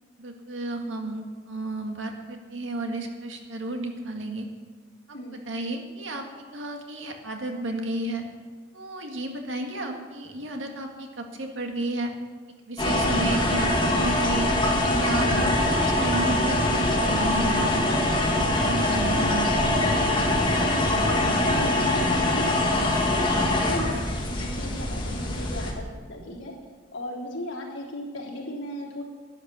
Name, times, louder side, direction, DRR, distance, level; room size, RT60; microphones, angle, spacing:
voice 1, 0.2-4.5 5.3-8.2 8.7-12.1 12.7-14.5 14.9-16.6 17.0-18.0 18.6-19.5, right 2 dB, 85° right, 3 dB, 1.9 m, -32 dB
sound 1, 12.8-25.7, left 1 dB, 25° left, 1.9 m, -23 dB
voice 2, 20.0-20.5 21.0-23.2 23.5-26.5 26.9-29.0, left 1 dB, 80° left, -3 dB, 3.4 m, -37 dB
12.0 x 10.0 x 6.8 m, 1.4 s
head